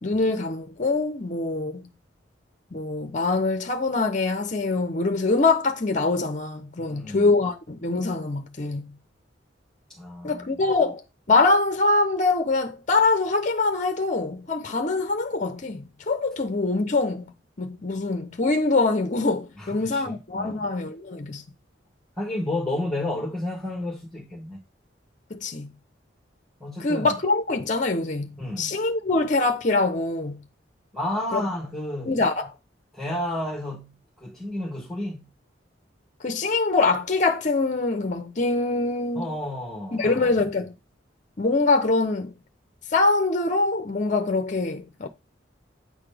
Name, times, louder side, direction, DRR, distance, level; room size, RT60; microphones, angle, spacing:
voice 1, 0.0-1.9 2.7-9.0 10.2-17.3 17.6-21.4 25.3-25.7 26.8-30.4 31.3-31.4 32.1-32.5 36.2-39.2 39.9-40.7 41.4-42.3 42.9-45.1, left 3 dB, 40° left, 0.7 m, -24 dB
voice 2, 6.8-7.3 9.9-10.6 19.6-20.7 22.2-24.6 26.6-27.2 28.4-28.8 30.9-32.2 32.9-35.3 39.1-40.5, left 1 dB, 5° left, 1.5 m, -31 dB
8.5 x 4.1 x 3.4 m
head